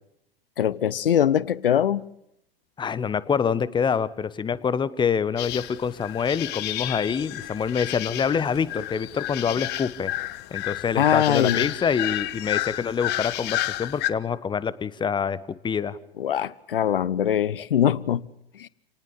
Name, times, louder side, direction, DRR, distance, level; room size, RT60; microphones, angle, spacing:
voice 1, 0.6-2.0 11.0-11.6 16.2-18.2 18.6-18.7, left 9 dB, 65° left, 0.8 m, -22 dB
voice 2, 2.8-10.1 10.5-15.4 15.6-16.0, left 6 dB, 15° left, 1.1 m, -26 dB
sound 1, 5.4-14.1, left 15 dB, 35° left, 1.2 m, -31 dB
29.0 x 19.0 x 6.8 m
figure-of-eight pair, 90°, 30 cm